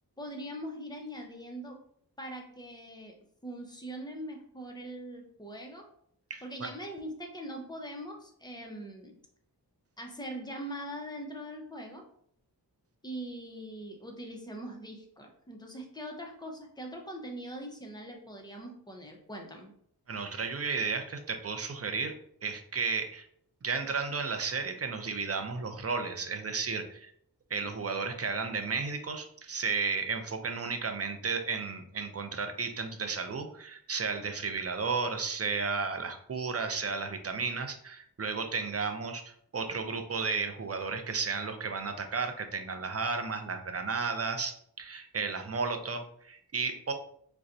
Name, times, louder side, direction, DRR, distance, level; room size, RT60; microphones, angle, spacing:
voice 1, 0.2-1.8 2.2-3.1 3.4-5.9 6.4-9.2 10.0-12.1 13.0-19.7, right 1 dB, 10° left, 2 dB, 0.7 m, -42 dB
voice 2, 20.1-22.1 22.4-23.3 23.6-27.1 27.5-46.9, right 4 dB, 40° right, 6 dB, 0.5 m, -33 dB
4.1 x 2.2 x 2.6 m, 0.65 s
wide cardioid pair, 45°, 40 cm